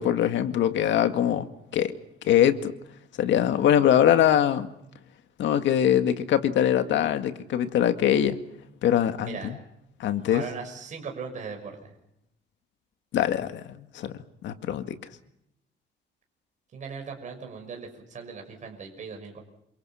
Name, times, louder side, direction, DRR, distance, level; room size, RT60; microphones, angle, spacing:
voice 1, 0.0-1.5 1.7-1.9 2.2-2.7 3.2-4.7 5.4-8.4 8.8-9.6 10.0-10.5 13.1-15.0, left 10 dB, 75° left, 2.0 m, -23 dB
voice 2, 10.3-11.9 16.7-19.4, right 5 dB, 40° right, 6.1 m, -38 dB
28.5 x 26.0 x 5.8 m
cardioid pair, 155°, 19 cm